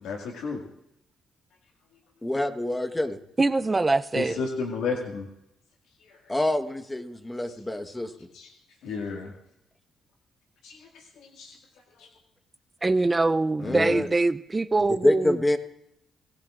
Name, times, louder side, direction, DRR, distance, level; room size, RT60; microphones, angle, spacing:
voice 1, 0.0-0.6 4.1-5.3 6.0-6.2 8.3-8.5 8.8-9.3 10.6-10.8 11.2-11.5 12.0-12.1 13.6-14.0, left 4 dB, 85° left, 0 dB, 2.2 m, -32 dB
voice 2, 2.2-3.2 6.3-8.1 13.6-14.1 14.9-15.6, left 1 dB, 10° left, 8 dB, 1.3 m, -26 dB
voice 3, 3.4-4.4 12.8-15.4, right 3 dB, 20° right, 13 dB, 0.5 m, -23 dB
27.5 x 17.5 x 2.5 m, 0.83 s
cardioid pair, 90°, 0 cm